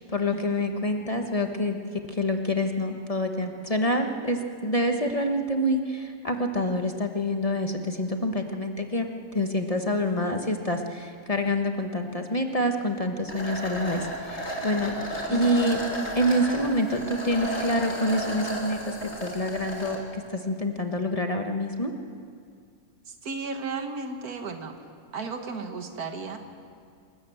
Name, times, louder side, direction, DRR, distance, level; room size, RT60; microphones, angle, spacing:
voice 1, 0.1-1.8 2.1-9.1 9.3-14.9 15.3-15.8 16.2-21.9, left 1 dB, 25° left, 4 dB, 1.2 m, -27 dB
sound 1, 13.3-20.0, right 1 dB, 45° left, 3.1 m, -33 dB
voice 2, 15.3-15.8 23.1-24.8 25.1-26.4, right 4 dB, 90° right, 6 dB, 2.0 m, -34 dB
27.5 x 13.5 x 7.8 m, 2.3 s
omnidirectional pair, 1.5 m